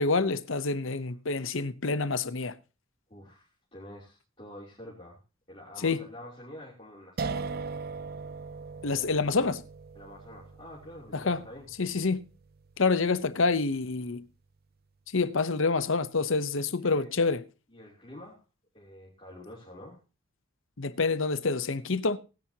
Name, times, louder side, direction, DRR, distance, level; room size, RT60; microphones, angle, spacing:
voice 1, 0.0-2.6 5.8-6.0 8.8-9.6 11.1-11.4 11.8-12.2 12.8-14.2 15.1-17.4 20.8-22.2, left 4 dB, 65° left, 0.8 m, -27 dB
voice 2, 3.1-5.2 5.5-7.6 9.9-11.7 16.8-17.1 17.7-18.4 18.7-20.0, left 1 dB, 25° left, 3.1 m, -47 dB
sound 1, 7.2-14.1, right 4 dB, 45° right, 0.5 m, -40 dB
17.5 x 10.5 x 2.9 m
head